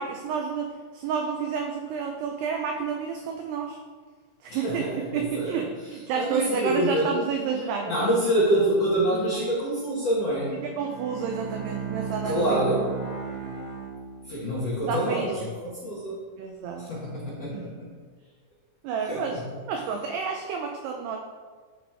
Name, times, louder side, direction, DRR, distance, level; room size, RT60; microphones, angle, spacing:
voice 1, 0.0-3.8 4.4-8.1 10.6-12.6 14.8-15.3 16.4-16.9 17.5-17.8 18.8-19.4 19.7-21.2, right 6 dB, 85° right, 3 dB, 2.3 m, -30 dB
voice 2, 4.5-5.5 6.1-7.1 7.9-10.5 12.2-12.9 14.3-16.2 16.8-17.9 19.0-19.2, right 1 dB, 60° left, -7 dB, 1.7 m, -26 dB
Bowed string instrument, 10.6-14.7, right 5 dB, 40° right, 0.9 m, -36 dB
11.0 x 4.1 x 4.6 m, 1.5 s
omnidirectional pair, 5.3 m